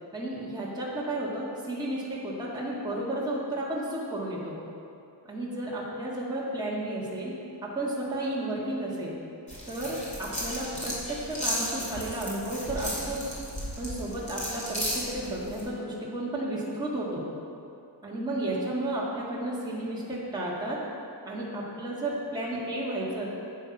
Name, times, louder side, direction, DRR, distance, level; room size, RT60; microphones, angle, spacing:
voice 1, 0.1-4.6 5.3-9.2 9.7-13.2 13.8-17.3 18.0-20.8 21.3-23.3, right 1 dB, 10° right, -7 dB, 1.7 m, -32 dB
sound 1, 9.5-15.6, equal, 15° left, 2.5 m, -35 dB
10.0 x 8.2 x 5.9 m, 2.7 s
wide cardioid pair, 175°, 43 cm